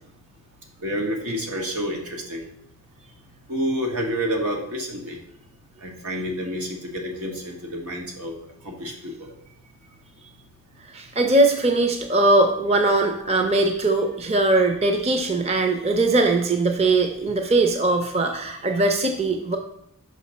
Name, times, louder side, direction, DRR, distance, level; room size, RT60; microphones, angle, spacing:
voice 1, 0.8-2.4 3.5-5.2 5.8-8.3 8.6-9.3, equal, 85° right, 1 dB, 1.4 m, -29 dB
voice 2, 10.9-19.6, right 2 dB, 30° right, 5 dB, 0.5 m, -20 dB
6.1 x 5.3 x 4.2 m, 0.77 s
head